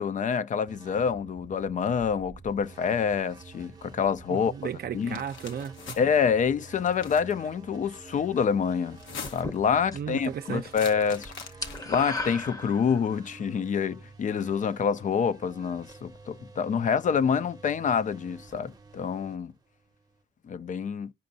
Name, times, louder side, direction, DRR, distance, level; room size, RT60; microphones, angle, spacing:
voice 1, 0.0-4.5 4.9-5.2 6.0-9.0 9.3-11.3 11.9-19.5 20.4-21.1, left 6 dB, 40° left, 0.4 m, -27 dB
sound 1, 0.7-20.2, right 4 dB, 20° right, 0.8 m, -49 dB
voice 2, 4.3-6.1 9.9-10.7, right 8 dB, 50° right, 0.5 m, -35 dB
sound 2, 5.0-6.0 6.8-7.3 8.9-9.6 10.6-12.0, left 6 dB, 75° left, 0.9 m, -42 dB
sound 3, 9.2-10.2 10.5-10.9 11.1-13.2, left 2 dB, 20° left, 0.8 m, -35 dB
13.5 x 5.1 x 2.7 m
cardioid pair, 90°, 20 cm